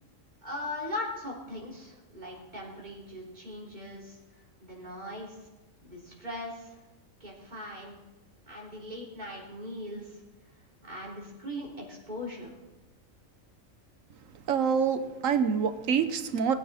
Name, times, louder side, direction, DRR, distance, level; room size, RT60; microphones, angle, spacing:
voice 1, 0.4-4.2 4.6-5.4 5.8-6.8 7.2-8.0 8.5-10.2 10.8-12.5, left 1 dB, 35° right, -4 dB, 3.7 m, -39 dB
voice 2, 14.5-16.5, right 6 dB, 75° right, 10 dB, 1.2 m, -26 dB
20.5 x 9.3 x 4.2 m, 1.1 s
omnidirectional pair, 1.4 m